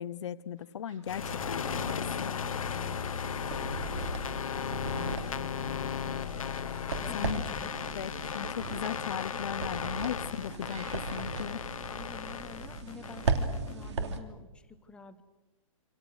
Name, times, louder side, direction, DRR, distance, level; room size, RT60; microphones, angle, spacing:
voice 1, 0.0-2.3 7.1-7.4 7.9-11.6, left 8 dB, 55° left, 13 dB, 0.9 m, -37 dB
sound 1, 0.6-12.6, right 5 dB, 75° right, 5.3 m, -61 dB
sound 2, 1.1-13.9, left 8 dB, 80° left, 1.2 m, -36 dB
sound 3, 1.2-14.2, right 4 dB, 55° right, 3.0 m, -38 dB
voice 2, 6.9-7.8 11.9-15.2, left 5 dB, 5° left, 9 dB, 1.0 m, -49 dB
27.5 x 27.0 x 6.4 m, 1.1 s
hypercardioid pair, 165°, 18 cm